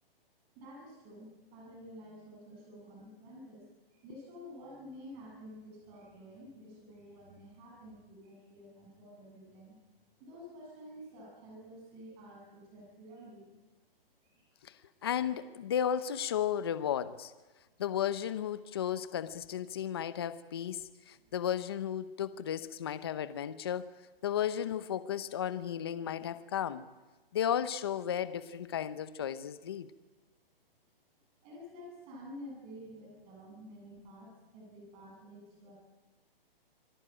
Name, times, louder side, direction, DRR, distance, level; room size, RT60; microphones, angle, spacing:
voice 1, 0.5-9.8 10.2-13.5 14.2-14.5 31.4-35.7, equal, 20° right, -1 dB, 7.9 m, -50 dB
voice 2, 15.0-17.3 17.8-23.9 24.2-26.8 27.3-29.9, left 9 dB, 25° left, 13 dB, 0.7 m, -34 dB
26.0 x 18.0 x 8.9 m, 1.2 s
hypercardioid pair, 170°, 30 cm